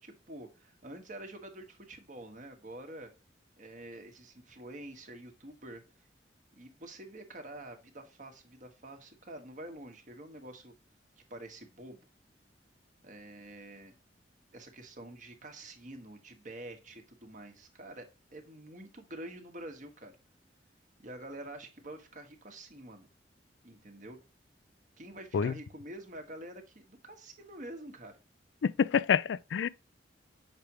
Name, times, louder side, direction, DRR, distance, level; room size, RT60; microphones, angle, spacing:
voice 1, 0.0-3.1 3.6-5.8 6.5-10.7 11.3-12.1 13.0-13.9 14.5-20.1 21.0-23.1 23.6-24.2 25.0-28.2, right 1 dB, 45° right, 1.3 m, -47 dB
voice 2, 28.6-29.7, left 7 dB, 85° left, 0.4 m, -27 dB
6.7 x 4.9 x 2.9 m
head